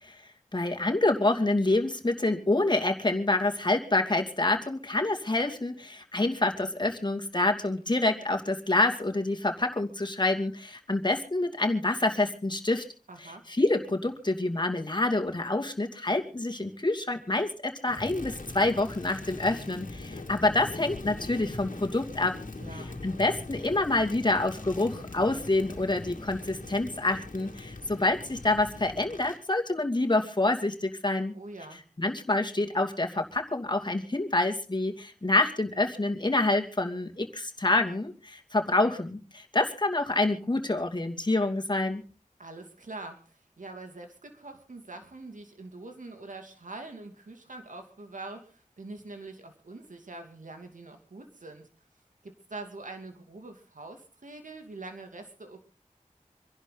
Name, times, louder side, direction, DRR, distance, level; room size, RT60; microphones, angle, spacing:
voice 1, 0.5-12.8 13.2-22.3 22.7-31.3 32.0-42.0, left 2 dB, 35° left, 4 dB, 2.6 m, -27 dB
voice 2, 13.1-13.4 22.6-22.9 31.3-31.8 42.4-51.7 52.2-55.6, right 2 dB, 75° right, 5 dB, 2.6 m, -44 dB
Crackle, 17.9-29.4, left 2 dB, 85° left, 2.3 m, -41 dB
27.0 x 11.0 x 4.0 m, 0.36 s
wide cardioid pair, 45°, 13 cm